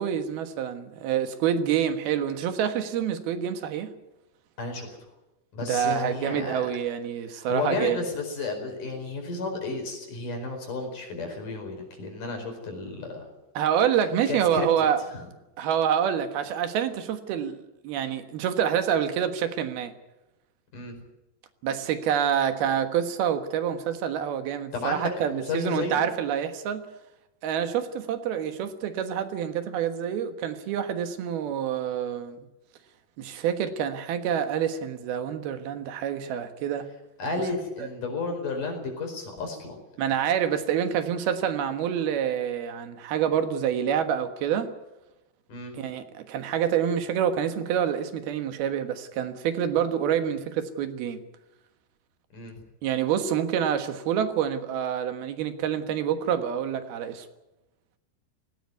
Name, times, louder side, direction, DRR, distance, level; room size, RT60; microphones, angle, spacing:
voice 1, 0.0-3.9 5.6-8.0 13.5-15.0 15.6-19.9 21.6-26.9 27.4-32.4 33.2-36.9 40.0-44.7 45.7-51.2 52.8-57.3, right 9 dB, 80° right, 3.3 m, -27 dB
voice 2, 4.6-5.0 5.5-6.6 7.3-13.2 14.3-14.8 15.1-15.3 20.7-20.9 24.7-26.0 37.2-39.8 45.5-45.7 52.3-52.5, left 3 dB, 55° left, 6.2 m, -32 dB
18.5 x 18.0 x 9.5 m
omnidirectional pair, 4.4 m